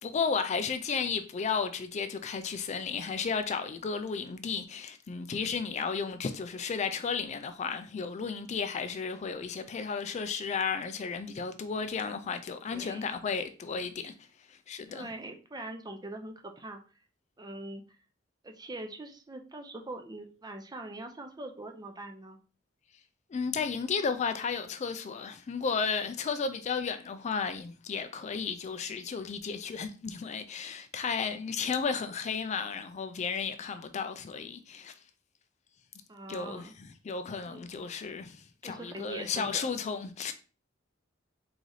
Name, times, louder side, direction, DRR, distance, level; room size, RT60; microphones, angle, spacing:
voice 1, 0.0-14.1 14.5-15.1 23.3-34.9 36.3-36.7 37.0-40.3, left 5 dB, 35° left, 0.3 m, -33 dB
voice 2, 12.7-13.1 14.9-16.8 17.4-17.8 18.4-22.4 36.1-36.7 37.5-37.7 38.6-39.7, right 2 dB, 20° right, 0.6 m, -42 dB
3.9 x 3.1 x 3.9 m
head